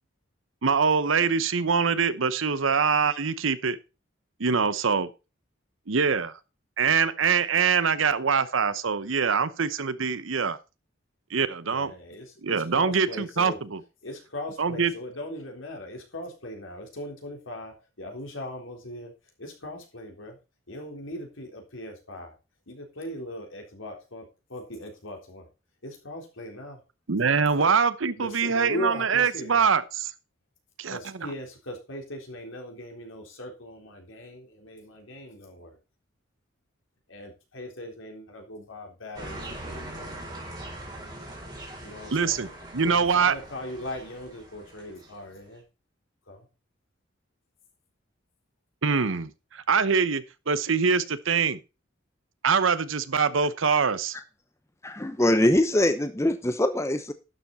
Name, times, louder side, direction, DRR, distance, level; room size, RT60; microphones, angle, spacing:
voice 1, 0.6-3.8 4.4-5.1 5.9-6.4 6.8-10.6 11.3-11.9 12.4-13.8 14.6-14.9 27.1-30.1 30.8-31.3 42.1-42.5 42.7-43.4 48.8-51.6 52.4-54.1, right 5 dB, 75° right, 0.8 m, -24 dB
voice 2, 11.6-13.6 14.0-19.1 19.4-20.4 20.7-22.4 22.7-25.5 25.8-26.8 27.6-27.7 28.2-29.6 30.9-35.8 37.1-40.2 41.8-42.5 42.8-45.6 46.3-46.5, left 1 dB, 75° left, 3.7 m, -39 dB
sound 1, 39.1-45.4, right 1 dB, 20° right, 4.4 m, -41 dB
voice 3, 54.8-57.1, left 1 dB, 15° left, 0.7 m, -23 dB
12.0 x 7.2 x 4.1 m
head